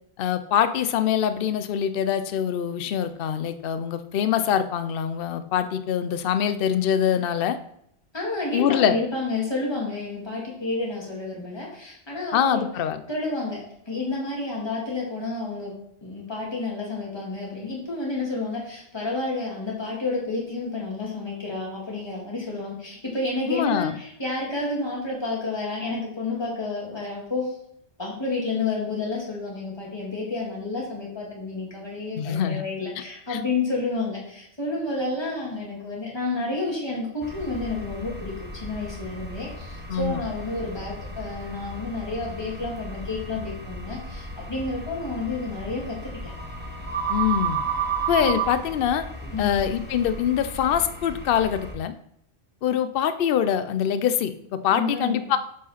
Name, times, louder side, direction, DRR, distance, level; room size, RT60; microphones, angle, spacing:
voice 1, 0.2-7.6 8.5-9.0 12.3-13.0 23.5-24.0 32.2-32.6 33.3-33.4 39.9-40.2 47.1-47.6 48.1-49.0 49.4-51.9 52.6-55.4, left 9 dB, 60° left, 10 dB, 0.7 m, -24 dB
voice 2, 8.1-12.7 13.1-15.7 16.0-27.5 28.0-46.0 46.2-46.3 48.2-48.3 49.3-49.6 54.7-55.2, left 3 dB, 20° left, -4 dB, 2.1 m, -30 dB
sound 1, 37.2-51.7, right 4 dB, 10° right, 1.0 m, -33 dB
7.1 x 4.9 x 4.2 m, 0.73 s
omnidirectional pair, 1.2 m